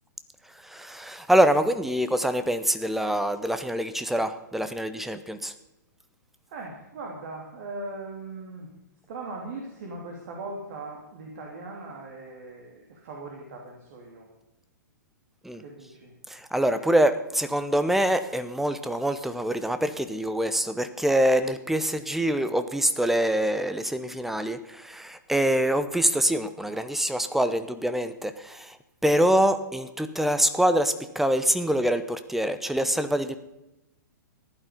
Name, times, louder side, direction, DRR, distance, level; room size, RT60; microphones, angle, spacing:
voice 1, 0.6-5.5 15.4-15.6 16.3-28.8 29.0-33.4, right 1 dB, 5° right, 10 dB, 0.8 m, -25 dB
voice 2, 6.5-8.7 9.1-14.3 15.6-16.1, right 2 dB, 50° right, 0 dB, 3.1 m, -39 dB
15.5 x 11.5 x 5.2 m, 0.95 s
figure-of-eight pair, 115°, 10 cm